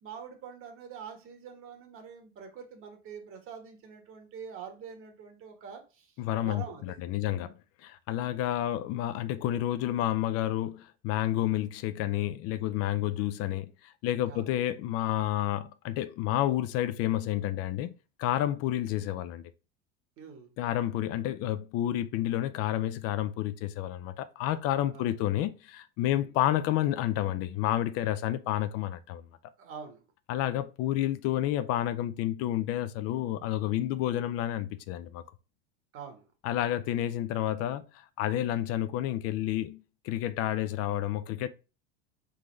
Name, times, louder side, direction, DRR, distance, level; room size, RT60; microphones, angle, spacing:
voice 1, 0.0-6.1 6.4-7.4 14.3-14.5 20.2-20.5 24.9-25.1 26.1-26.3 29.6-30.0 35.9-36.2, right 6 dB, 45° right, 1.5 m, -45 dB
voice 2, 6.2-17.9 18.2-19.5 20.6-29.2 30.3-35.2 36.4-41.5, left 13 dB, 55° left, 0.5 m, -30 dB
3.9 x 3.7 x 3.1 m
supercardioid pair, 100°, 29 cm